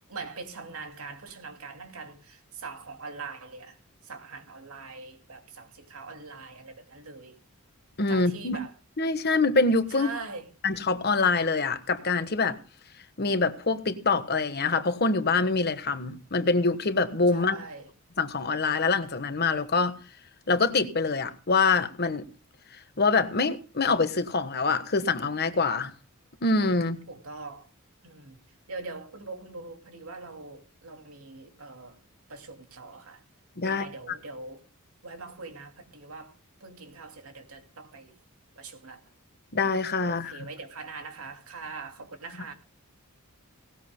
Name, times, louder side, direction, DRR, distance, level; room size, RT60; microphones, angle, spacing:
voice 1, 0.1-3.8 4.0-7.4 8.1-8.7 9.9-10.5 17.3-17.9 27.1-27.7 28.0-28.4 28.7-32.0 32.3-33.2 33.6-34.6 35.0-38.2 38.6-39.0 40.0-42.5, right 3 dB, 75° right, 2.7 m, -42 dB
voice 2, 8.0-8.6 9.0-10.1 10.6-12.6 13.2-17.6 18.2-20.0 20.5-22.3 23.0-25.9 26.4-27.0 33.6-33.9 39.5-40.3, left 3 dB, 45° left, 1.3 m, -25 dB
18.5 x 17.5 x 2.2 m
head